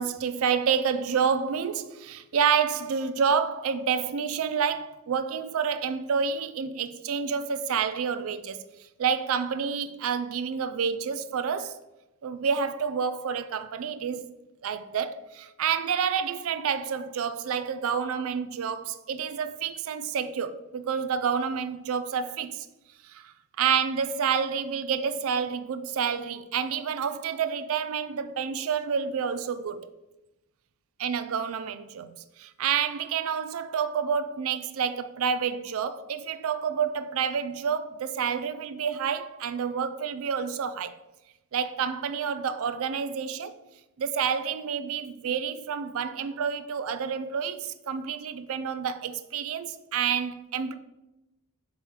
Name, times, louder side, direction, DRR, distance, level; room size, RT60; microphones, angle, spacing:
voice 1, 0.0-8.6 9.0-11.8 12.2-14.3 14.6-22.7 23.0-29.9 31.0-32.1 32.4-40.9 41.5-43.5 44.0-50.7, right 7 dB, 65° right, 0.4 m, -29 dB
7.6 x 3.2 x 4.7 m
head